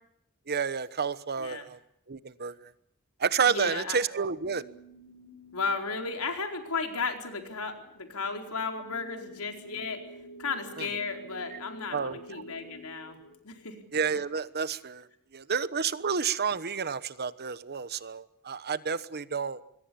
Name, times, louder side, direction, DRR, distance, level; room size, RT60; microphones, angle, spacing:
voice 1, 0.5-1.8 2.1-2.7 3.2-4.6 10.8-10.9 11.5-11.6 11.9-12.4 13.9-15.1 15.3-19.6, right 6 dB, 45° right, 15 dB, 1.1 m, -30 dB
voice 2, 3.5-4.0 5.5-10.0 10.4-13.2 13.4-13.8, left 4 dB, 85° left, 4 dB, 4.5 m, -34 dB
sound 1, 4.4-14.2, equal, 60° left, 3.2 m, -50 dB
26.0 x 22.0 x 7.1 m, 0.76 s
head